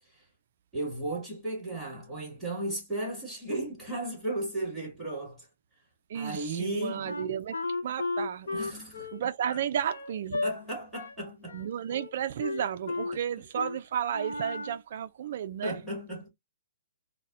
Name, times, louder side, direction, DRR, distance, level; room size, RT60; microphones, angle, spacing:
voice 1, 0.7-5.5 6.1-7.1 8.5-9.1 10.4-11.6 15.6-16.3, right 1 dB, 5° right, 2.0 m, -35 dB
voice 2, 6.1-7.6 7.8-8.6 9.1-10.5 11.5-15.8, right 9 dB, 55° right, 0.3 m, -33 dB
Wind instrument woodwind instrument, 7.0-10.5 10.9-11.2 11.5-12.1 12.4-13.2 13.5-13.8 14.1-14.8, left 3 dB, 85° left, 1.0 m, -34 dB
3.9 x 2.1 x 2.4 m
hypercardioid pair, 150°, 0 cm